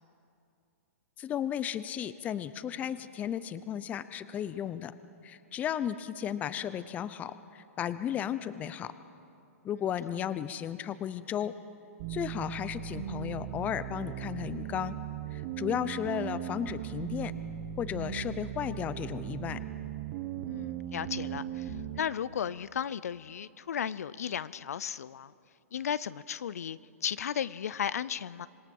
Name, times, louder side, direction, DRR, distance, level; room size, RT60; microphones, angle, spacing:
voice 1, 1.2-4.9 5.2-8.9 9.6-11.5 12.1-15.0 15.3-17.3 17.8-19.6, left 9 dB, 20° left, 14 dB, 0.6 m, -34 dB
sound 1, 12.0-22.0, right 10 dB, 40° right, 1.1 m, -38 dB
voice 2, 20.5-25.3 25.7-28.5, left 8 dB, 80° left, 18 dB, 0.5 m, -35 dB
26.5 x 20.0 x 5.4 m, 2.6 s
hypercardioid pair, 145°, 8 cm